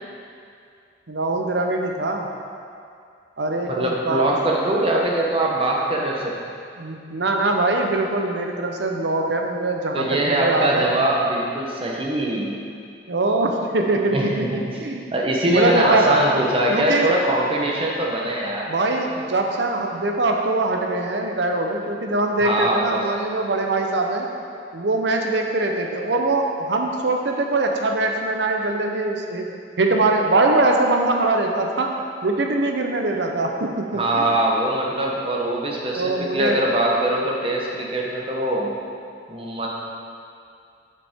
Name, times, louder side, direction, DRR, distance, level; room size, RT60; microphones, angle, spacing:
voice 1, 1.1-2.2 3.4-4.2 6.8-10.9 13.1-14.4 14.8-15.1 15.4-16.2 16.7-17.1 18.7-24.3 24.7-29.4 29.8-31.9 32.2-34.3 36.0-36.6, right 2 dB, 70° right, 2 dB, 0.7 m, -22 dB
voice 2, 3.7-6.4 9.9-12.6 14.1-14.7 15.1-18.7 22.4-23.1 33.9-38.7 39.3-39.7, right 1 dB, 30° right, -2 dB, 0.9 m, -22 dB
7.5 x 6.9 x 3.6 m, 2.4 s
head